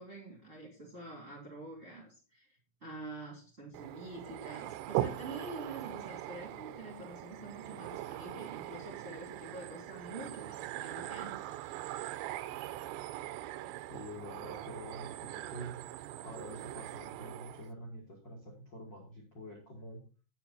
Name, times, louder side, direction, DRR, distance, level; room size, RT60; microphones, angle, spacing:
voice 1, 0.0-11.3, right 2 dB, 20° right, -2 dB, 2.1 m, -47 dB
sound 1, 3.7-17.7, right 14 dB, 85° right, 2.6 m, -41 dB
voice 2, 13.9-15.8 16.2-20.0, equal, 40° left, 0 dB, 1.7 m, -47 dB
9.3 x 9.0 x 4.2 m, 0.34 s
omnidirectional pair, 5.8 m